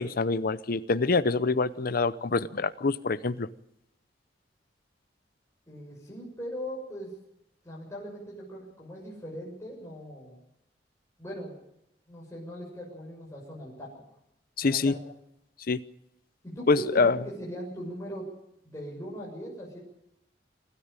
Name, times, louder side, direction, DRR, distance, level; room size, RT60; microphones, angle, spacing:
voice 1, 0.0-3.5 14.6-14.9 15.7-15.8 16.7-17.2, left 3 dB, 55° left, 14 dB, 0.7 m, -25 dB
voice 2, 5.7-7.1 7.6-10.4 11.2-11.6 12.1-14.0 14.6-15.0 16.4-18.3 18.6-19.8, equal, 15° left, -5 dB, 7.1 m, -40 dB
26.5 x 13.5 x 8.9 m, 0.82 s
head